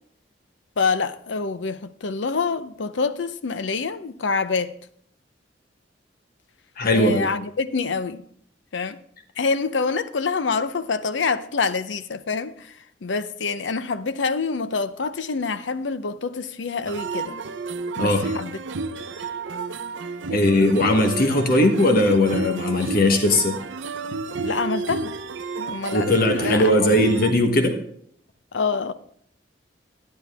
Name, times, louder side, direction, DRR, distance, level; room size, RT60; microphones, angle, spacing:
voice 1, 0.8-4.7 6.9-8.2 8.7-9.0 9.4-17.4 18.0-18.6 20.3-20.7 24.4-25.1 25.6-26.9 28.5-28.9, left 4 dB, 75° left, 0.6 m, -26 dB
voice 2, 6.8-7.3 18.0-18.2 20.3-23.6 25.9-27.8, left 1 dB, 55° left, 1.2 m, -19 dB
sound 1, 16.8-27.3, right 4 dB, 85° right, 0.6 m, -31 dB
11.5 x 10.5 x 3.5 m
head